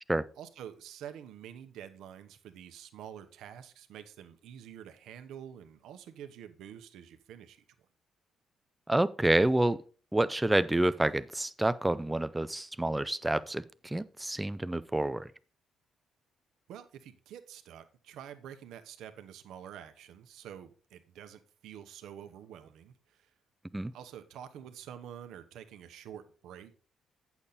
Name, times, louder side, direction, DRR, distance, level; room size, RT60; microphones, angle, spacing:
voice 1, 0.4-7.6 16.7-23.3 23.9-26.7, right 9 dB, 85° right, 1.0 m, -48 dB
voice 2, 8.9-9.8 10.1-15.3 23.7-23.9, right 1 dB, 10° right, 0.5 m, -28 dB
8.5 x 7.1 x 4.0 m
cardioid pair, 90°, 0 cm